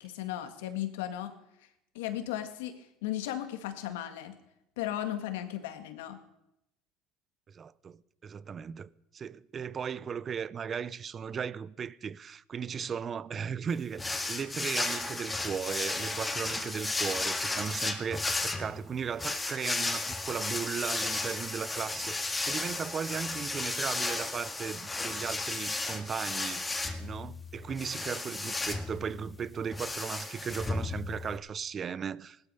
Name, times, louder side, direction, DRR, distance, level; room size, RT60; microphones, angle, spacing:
voice 1, 0.0-1.3 2.0-4.4 4.8-6.2, left 12 dB, 85° left, 1.7 m, -36 dB
voice 2, 7.5-14.0 14.3-32.4, right 7 dB, 35° right, 0.5 m, -36 dB
sound 1, 14.0-31.4, left 3 dB, 15° left, 1.8 m, -34 dB
16.5 x 12.5 x 5.6 m
supercardioid pair, 95°, 0 cm